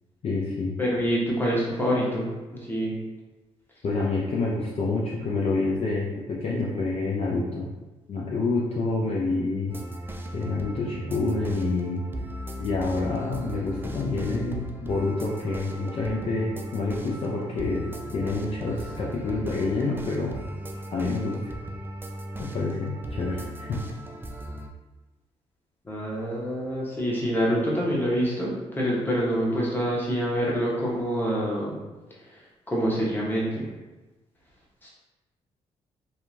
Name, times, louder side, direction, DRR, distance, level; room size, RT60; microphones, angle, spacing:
voice 1, 0.2-0.7 3.8-7.7 8.1-9.7 10.3-12.0 12.6-20.4 20.9-21.4 22.4-23.9, left 3 dB, 45° left, -4 dB, 0.5 m, -28 dB
voice 2, 0.8-2.3 2.5-3.0 25.8-31.8 32.7-33.7 34.8-34.9, equal, 15° left, -5 dB, 1.0 m, -26 dB
sound 1, 9.7-24.7, right 1 dB, 15° right, 0.3 m, -37 dB
2.8 x 2.2 x 2.6 m, 1.1 s
hypercardioid pair, 50°, 14 cm